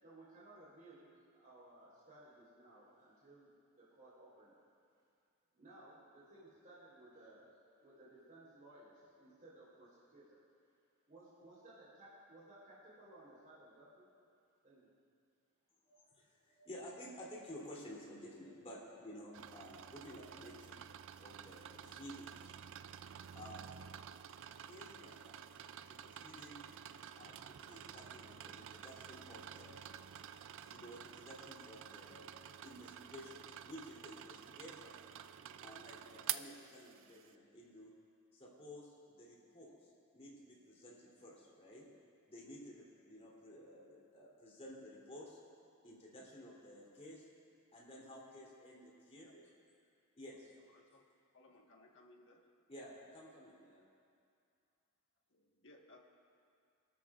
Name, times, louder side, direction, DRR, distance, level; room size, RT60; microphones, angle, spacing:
voice 1, 0.0-4.5 5.5-7.5 7.8-10.4 11.1-14.1 14.6-14.9, right 1 dB, 40° right, -9 dB, 3.9 m, -59 dB
voice 2, 15.8-20.8 21.2-22.5 23.3-23.7 24.6-25.4 25.8-26.8 27.2-29.8 30.6-33.4 33.6-34.9 35.6-37.9 38.3-41.8 42.3-45.4 45.8-47.3 47.7-49.3 50.2-50.7 52.7-53.8, equal, 30° left, -5 dB, 3.2 m, -53 dB
sound 1, 19.3-37.3, right 10 dB, 60° right, 0.4 m, -50 dB
voice 3, 49.2-49.7 50.7-51.0 51.3-52.5 55.3-56.0, left 1 dB, 60° left, 0 dB, 1.5 m, -63 dB
26.0 x 13.0 x 2.5 m, 2.4 s
head